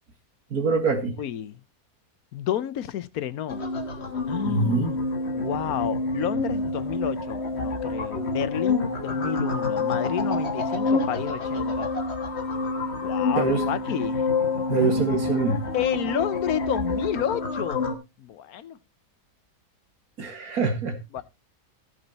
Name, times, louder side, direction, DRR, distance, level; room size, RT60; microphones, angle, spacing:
voice 1, 0.5-1.2 4.4-4.9 13.4-13.6 14.7-15.6 20.2-21.0, right 4 dB, 85° right, 2.3 m, -24 dB
voice 2, 1.2-1.6 2.3-3.6 4.3-5.0 5.3-11.9 13.0-14.2 14.7-15.1 15.7-17.9 18.2-18.8 21.1-21.2, left 11 dB, 85° left, 1.3 m, -30 dB
sound 1, 3.5-17.9, left 3 dB, 50° left, 1.8 m, -27 dB
15.0 x 7.2 x 4.2 m
omnidirectional pair, 1.5 m